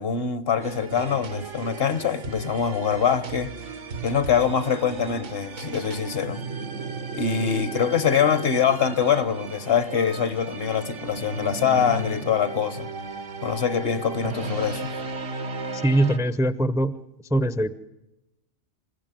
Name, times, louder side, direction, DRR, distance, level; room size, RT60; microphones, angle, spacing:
voice 1, 0.0-3.5 4.0-6.4 7.1-12.9 13.4-14.9, left 7 dB, 55° left, 1.2 m, -24 dB
sound 1, 0.6-16.2, right 4 dB, 85° right, 1.8 m, -35 dB
voice 2, 15.7-16.9 17.3-17.7, right 1 dB, 5° right, 0.5 m, -22 dB
27.0 x 16.5 x 9.1 m
omnidirectional pair, 1.2 m